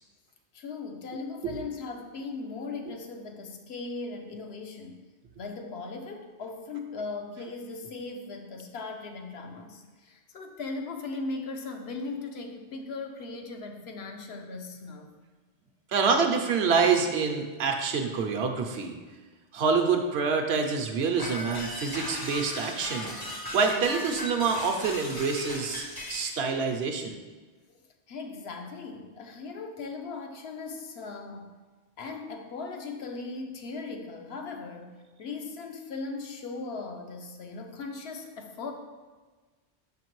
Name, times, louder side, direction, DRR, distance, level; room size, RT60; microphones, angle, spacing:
voice 1, 0.5-5.0 5.4-15.1 27.7-27.8 28.1-31.5 32.0-38.7, left 3 dB, 70° left, 4 dB, 0.9 m, -38 dB
voice 2, 15.9-19.0 19.5-23.1 23.5-27.2, right 5 dB, 75° right, 4 dB, 0.9 m, -26 dB
sound 1, 21.2-26.4, left 1 dB, 25° left, 0.5 m, -37 dB
5.8 x 5.6 x 3.0 m, 1.3 s
omnidirectional pair, 1.1 m